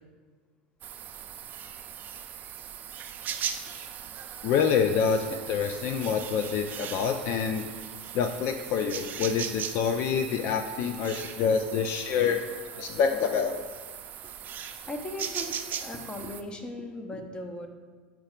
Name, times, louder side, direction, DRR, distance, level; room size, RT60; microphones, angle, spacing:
sound 1, 0.8-16.4, right 9 dB, 40° right, 0.4 m, -39 dB
voice 1, 4.4-7.7 8.1-12.4 12.8-13.6, left 6 dB, 55° left, 6 dB, 0.4 m, -27 dB
voice 2, 14.9-17.7, left 1 dB, 20° left, 5 dB, 0.7 m, -38 dB
5.8 x 3.8 x 4.4 m, 1.5 s
hypercardioid pair, 105°, 5 cm